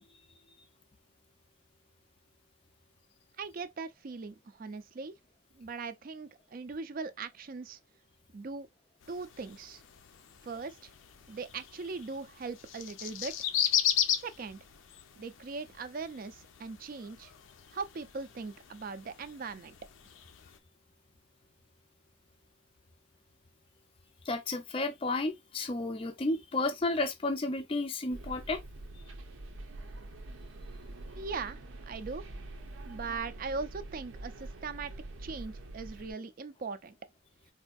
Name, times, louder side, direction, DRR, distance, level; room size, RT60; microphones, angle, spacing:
voice 1, 3.4-5.1 5.6-7.8 8.3-8.7 9.1-9.8 10.4-10.9 11.3-13.3 14.2-14.6 15.2-17.3 17.7-19.7 31.1-32.2 32.8-34.9 35.2-36.9, right 4 dB, 45° right, 0.4 m, -40 dB
sound 1, 9.0-20.6, left 9 dB, 80° left, 0.5 m, -37 dB
voice 2, 24.3-28.6, left 2 dB, 25° left, 0.4 m, -32 dB
sound 2, 28.1-36.1, right 2 dB, 80° right, 0.7 m, -45 dB
4.2 x 2.6 x 2.3 m
head